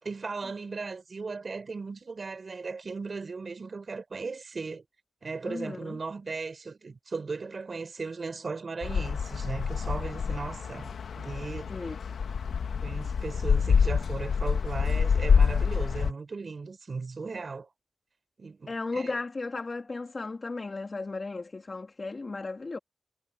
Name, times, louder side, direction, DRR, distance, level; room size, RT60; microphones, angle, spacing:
voice 1, 0.0-4.8 5.2-11.9 12.8-17.7 18.4-19.2, right 4 dB, 50° right, 3.9 m, -37 dB
voice 2, 5.4-6.0 11.7-11.9 18.7-22.8, left 3 dB, 40° left, 2.4 m, -35 dB
sound 1, 8.8-16.1, left 6 dB, 85° left, 1.3 m, -27 dB
cardioid pair, 80°, 0 cm